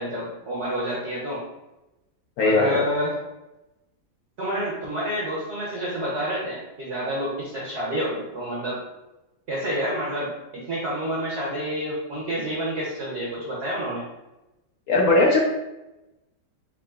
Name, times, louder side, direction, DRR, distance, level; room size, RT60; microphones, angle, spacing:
voice 1, 0.0-1.4 2.4-3.1 4.4-8.8 9.5-14.0, equal, 55° right, -6 dB, 0.7 m, -29 dB
voice 2, 2.4-2.8 14.9-15.4, left 2 dB, 70° left, -1 dB, 0.9 m, -19 dB
3.6 x 3.5 x 2.3 m, 0.98 s
omnidirectional pair, 1.9 m